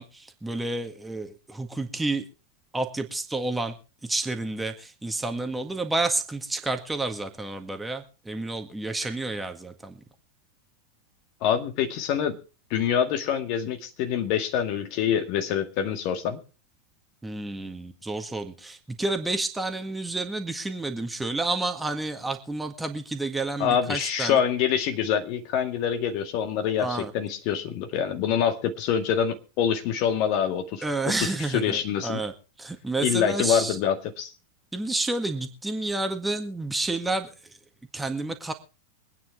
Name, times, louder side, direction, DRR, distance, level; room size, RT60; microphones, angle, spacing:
voice 1, 0.0-2.3 2.7-3.8 4.0-10.0 17.2-24.4 26.8-27.1 30.8-32.3 32.6-33.8 34.7-37.3 37.9-38.5, right 2 dB, 5° right, 1.8 m, -30 dB
voice 2, 11.4-12.4 12.7-16.4 23.6-30.8 31.5-32.2 33.0-34.3, left 8 dB, 45° left, 2.0 m, -25 dB
24.5 x 9.4 x 3.5 m
figure-of-eight pair, 90°, 0 cm